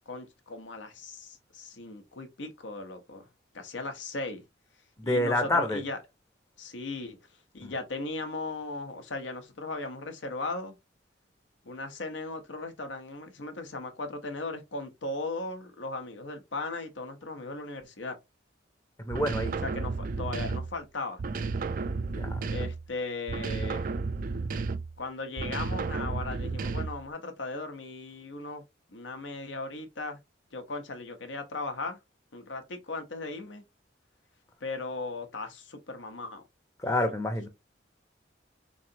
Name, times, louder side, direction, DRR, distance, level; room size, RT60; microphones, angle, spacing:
voice 1, 0.1-3.3 3.5-4.4 5.0-6.0 6.6-7.2 7.5-10.7 11.6-18.2 19.6-21.2 22.5-23.9 25.0-28.6 28.9-30.2 30.5-32.0 32.3-33.6 34.6-36.4, left 3 dB, 75° left, 0.8 m, -37 dB
voice 2, 5.0-5.8 7.6-7.7 19.0-19.5 22.1-22.4 36.8-37.5, left 1 dB, 15° left, 0.7 m, -28 dB
sound 1, 19.1-20.8 21.2-22.9 23.3-25.0 25.4-27.1, right 4 dB, 45° right, 0.4 m, -32 dB
3.7 x 3.1 x 2.7 m
head